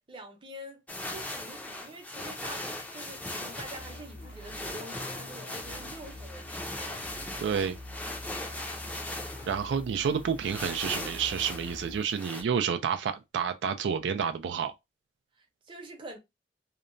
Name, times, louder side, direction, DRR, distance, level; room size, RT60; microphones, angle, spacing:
voice 1, 0.1-0.8 1.1-6.7 15.4-16.2, right 1 dB, 30° right, 0.7 m, -46 dB
sound 1, 0.9-12.4, left 1 dB, 10° left, 0.4 m, -39 dB
sound 2, 3.7-12.0, left 1 dB, 75° left, 0.6 m, -46 dB
voice 2, 7.4-7.8 9.5-14.7, right 7 dB, 85° right, 0.3 m, -29 dB
2.8 x 2.1 x 2.5 m
head